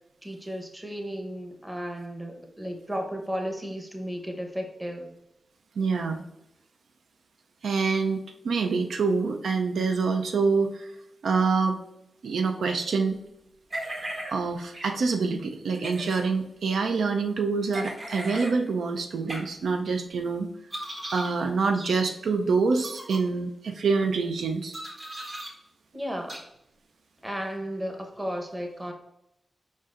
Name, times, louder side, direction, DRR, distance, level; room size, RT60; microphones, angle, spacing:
voice 1, 0.2-5.1 25.9-26.4 27.2-28.9, equal, 15° right, 3 dB, 0.9 m, -34 dB
voice 2, 5.8-6.2 7.6-10.9 11.2-11.8 12.2-13.2 14.3-20.5 21.1-24.7, right 4 dB, 85° right, 5 dB, 0.4 m, -26 dB
sound 1, 13.7-14.3 14.7-14.9 15.7-16.2 17.7-18.5 19.3-19.4 20.7-21.3 21.7-21.9 22.7-23.2 24.7-25.5 26.3-26.4, right 1 dB, 45° right, 1.4 m, -36 dB
4.9 x 4.2 x 2.4 m, 0.82 s
cardioid pair, 70°, 0 cm